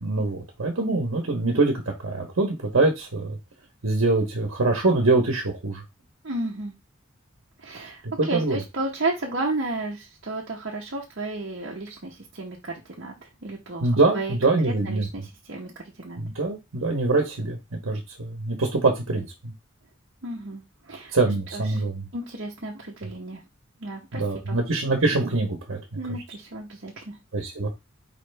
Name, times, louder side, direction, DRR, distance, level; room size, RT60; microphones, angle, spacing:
voice 1, 0.0-3.4 3.8-5.8 8.2-8.6 13.8-15.1 16.2-17.6 17.8-19.5 21.1-22.1 24.1-25.8 27.3-27.7, right 3 dB, 90° right, 2 dB, 1.1 m, -24 dB
voice 2, 6.2-6.7 7.6-16.2 20.2-21.1 21.5-21.8 22.1-23.4 23.8-24.6 25.9-27.2, right 2 dB, 65° right, -3 dB, 1.0 m, -33 dB
4.7 x 3.3 x 3.3 m, 0.23 s
head